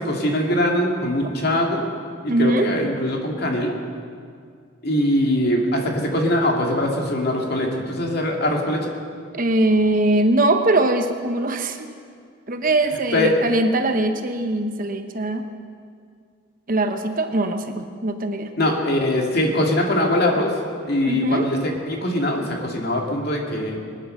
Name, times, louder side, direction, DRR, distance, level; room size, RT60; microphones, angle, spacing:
voice 1, 0.0-1.9 2.2-3.7 4.8-8.9 13.1-13.4 18.6-20.5 20.8-23.8, left 1 dB, 50° left, 0 dB, 2.3 m, -22 dB
voice 2, 2.3-2.7 9.3-11.9 12.5-15.4 16.7-18.5 21.0-21.5, right 2 dB, 45° right, 7 dB, 0.9 m, -21 dB
21.0 x 9.8 x 6.6 m, 2.2 s
head